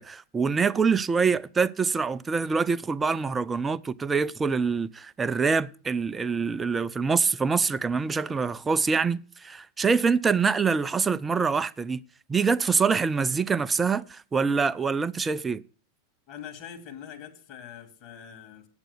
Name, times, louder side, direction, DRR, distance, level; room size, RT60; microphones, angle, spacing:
voice 1, 0.0-12.0 12.3-15.6, right 5 dB, 15° right, 0.4 m, -25 dB
voice 2, 16.3-18.7, left 9 dB, 40° left, 2.1 m, -43 dB
8.8 x 8.0 x 6.6 m
figure-of-eight pair, 90°, 0 cm